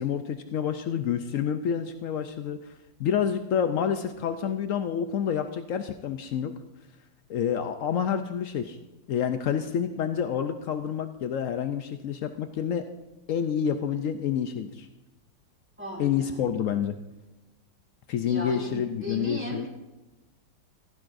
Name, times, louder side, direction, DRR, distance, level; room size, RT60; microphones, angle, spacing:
voice 1, 0.0-2.6 3.0-6.5 7.3-8.8 9.1-12.9 13.3-14.9 16.0-17.0 18.1-19.6, left 8 dB, 90° left, 8 dB, 0.7 m, -28 dB
voice 2, 15.8-16.4 18.2-19.7, left 1 dB, 5° right, -2 dB, 2.4 m, -36 dB
15.5 x 14.5 x 2.6 m, 1.0 s
omnidirectional pair, 2.1 m